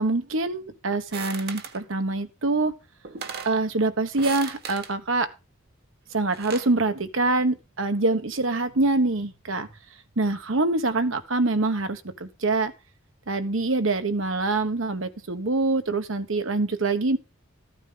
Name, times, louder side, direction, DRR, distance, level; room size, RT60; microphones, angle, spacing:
voice 1, 0.0-2.7 3.4-5.3 6.1-9.7 10.2-12.7 13.3-17.2, right 2 dB, 75° right, 9 dB, 1.1 m, -25 dB
sound 1, 1.1-1.8 2.7-2.8 3.0-3.6 4.1-4.9 6.1-6.7, right 6 dB, 55° right, 1.4 m, -37 dB
14.0 x 9.0 x 3.8 m, 0.29 s
head